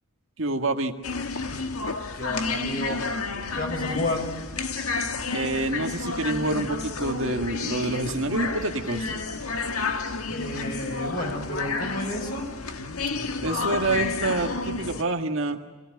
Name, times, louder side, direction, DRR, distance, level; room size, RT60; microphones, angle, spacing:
voice 1, 0.4-0.9 5.3-9.1 13.4-15.6, right 2 dB, 60° right, 4 dB, 1.8 m, -27 dB
sound 1, 1.0-15.0, left 4 dB, 85° left, 1.6 m, -31 dB
voice 2, 2.1-3.0 3.5-4.3 10.3-12.5, left 1 dB, 40° left, 2 dB, 6.1 m, -31 dB
28.5 x 18.0 x 9.2 m, 1.4 s
head